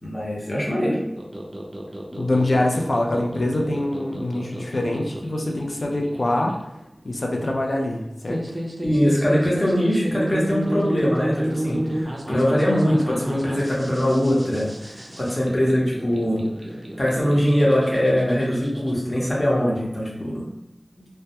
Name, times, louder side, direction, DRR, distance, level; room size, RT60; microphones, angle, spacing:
voice 1, 0.0-1.0 8.8-16.4 17.0-20.5, equal, 35° left, -5 dB, 0.8 m, -22 dB
sound 1, 1.2-18.9, right 1 dB, 35° right, 0.4 m, -32 dB
voice 2, 2.1-6.5 7.0-8.6, left 1 dB, 70° left, 0 dB, 0.4 m, -24 dB
2.2 x 2.1 x 2.8 m, 0.91 s
wide cardioid pair, 60°, 0 cm